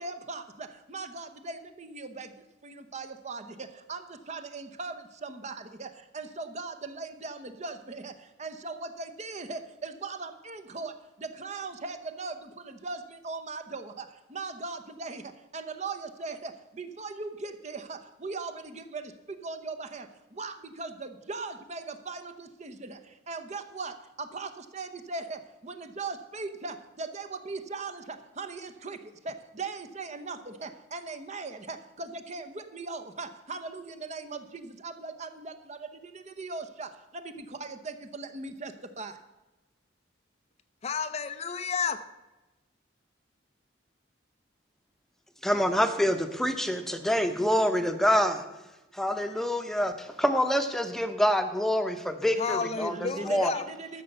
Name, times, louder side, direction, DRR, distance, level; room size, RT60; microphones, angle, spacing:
voice 1, 0.0-2.3 2.6-39.2 52.4-54.0, right 3 dB, 35° right, 8 dB, 0.8 m, -39 dB
voice 2, 40.8-42.0 52.4-53.6, left 5 dB, 35° left, 10 dB, 0.5 m, -31 dB
voice 3, 45.4-48.4 48.9-53.5, equal, ahead, 7 dB, 0.8 m, -26 dB
13.5 x 6.7 x 6.6 m, 1.1 s
head